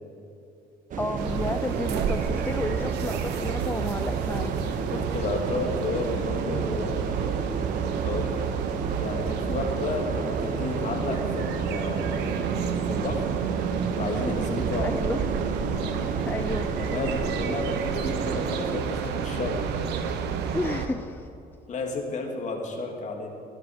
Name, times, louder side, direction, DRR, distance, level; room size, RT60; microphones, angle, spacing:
sound 1, 0.9-18.8, right 6 dB, 50° right, 1.2 m, -32 dB
voice 1, 1.0-4.5 14.8-15.2 16.3-16.7 20.5-21.3, left 2 dB, 10° left, 8 dB, 0.5 m, -31 dB
sound 2, 1.2-20.9, right 6 dB, 85° right, 1.3 m, -31 dB
voice 2, 4.9-7.5 8.0-8.4 9.0-12.4 12.9-13.3 14.0-14.9 16.8-19.6 21.7-23.3, left 3 dB, 45° left, 1 dB, 2.8 m, -32 dB
18.0 x 11.5 x 5.2 m, 2.7 s
cardioid pair, 110°, 17 cm